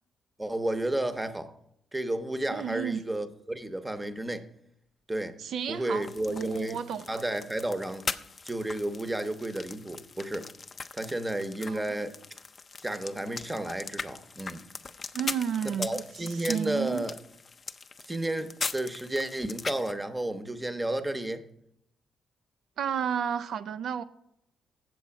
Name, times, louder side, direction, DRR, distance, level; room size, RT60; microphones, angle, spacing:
voice 1, 0.4-1.5 1.9-4.5 5.1-5.4 5.7-6.8 7.1-8.0 8.4-10.5 10.9-12.1 12.8-14.6 15.6-17.2 18.1-21.4, right 1 dB, 15° right, 0.8 m, -32 dB
voice 2, 2.5-3.0 5.4-7.2 11.7-11.9 15.1-17.1 22.8-24.0, right 8 dB, 70° right, 0.3 m, -32 dB
sound 1, 6.0-19.9, left 4 dB, 35° left, 0.4 m, -40 dB
7.9 x 7.7 x 5.8 m
cardioid pair, 90°, 0 cm